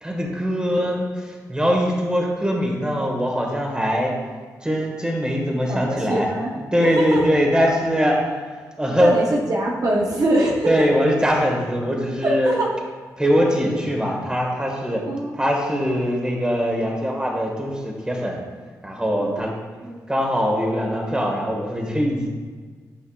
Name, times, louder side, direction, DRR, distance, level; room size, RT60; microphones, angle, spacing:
voice 1, 0.0-4.1 4.6-6.3 6.5-8.2 8.8-9.3 10.6-12.6 13.2-15.0 15.3-18.4 18.8-19.5 20.1-22.3, equal, 10° right, 0 dB, 1.5 m, -22 dB
voice 2, 5.7-6.5 6.8-7.3 7.6-7.7 9.0-10.9 12.2-12.7 15.1-16.0 19.2-19.4 19.8-20.0, right 1 dB, 60° right, -2 dB, 1.0 m, -24 dB
8.9 x 5.6 x 2.4 m, 1.5 s
cardioid pair, 55°, 7 cm